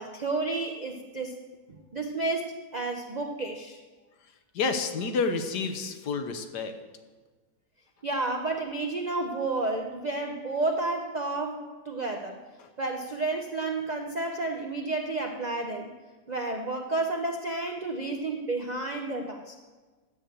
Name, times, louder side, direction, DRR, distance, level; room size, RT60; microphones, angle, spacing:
voice 1, 0.0-1.4 1.7-3.8 8.0-12.4 12.8-15.9 16.3-19.5, right 2 dB, 85° right, 3 dB, 0.3 m, -31 dB
voice 2, 4.5-6.7, left 4 dB, 75° left, 7 dB, 1.5 m, -29 dB
9.7 x 6.9 x 7.8 m, 1.4 s
omnidirectional pair, 1.9 m